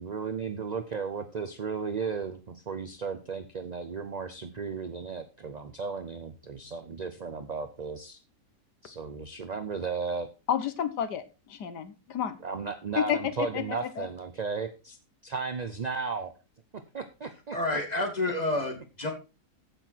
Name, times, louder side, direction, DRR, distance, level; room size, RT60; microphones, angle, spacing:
voice 1, 0.0-8.2 8.8-10.3 12.4-15.0 15.2-16.3 16.9-17.8, right 5 dB, 40° right, 9 dB, 0.6 m, -35 dB
voice 2, 10.5-12.4 13.0-14.1, left 9 dB, 80° left, 12 dB, 1.7 m, -31 dB
voice 3, 17.5-19.1, left 2 dB, 25° left, 3 dB, 2.5 m, -29 dB
15.0 x 6.0 x 4.5 m, 0.31 s
omnidirectional pair, 1.7 m